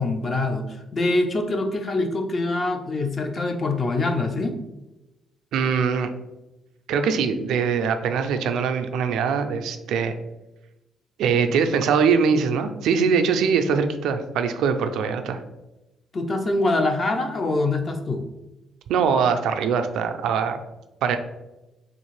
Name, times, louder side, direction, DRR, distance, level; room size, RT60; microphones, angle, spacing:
voice 1, 0.0-4.5 16.1-18.3, left 2 dB, 40° left, 5 dB, 0.5 m, -24 dB
voice 2, 5.5-6.1 6.9-10.1 11.2-15.4 18.9-20.6 21.0-21.2, right 6 dB, 80° right, 7 dB, 0.3 m, -22 dB
3.5 x 2.5 x 3.1 m, 0.98 s
cardioid pair, 90°, 0 cm